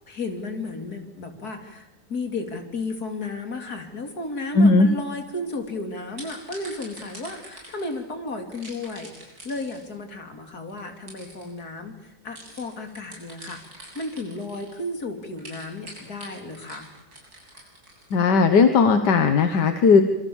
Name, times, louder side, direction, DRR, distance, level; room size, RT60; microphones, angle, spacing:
voice 1, 0.1-13.6 13.9-16.9, left 2 dB, 65° left, 5 dB, 3.7 m, -33 dB
voice 2, 4.6-4.9 18.1-20.0, left 4 dB, 85° left, 8 dB, 1.9 m, -17 dB
sound 1, 5.5-5.7 6.1-8.0 8.5-9.9 10.7-10.8 11.1-11.5 12.3-14.8 15.3-18.2, right 1 dB, 65° right, 8.4 m, -44 dB
26.5 x 26.0 x 7.3 m, 0.99 s
omnidirectional pair, 1.8 m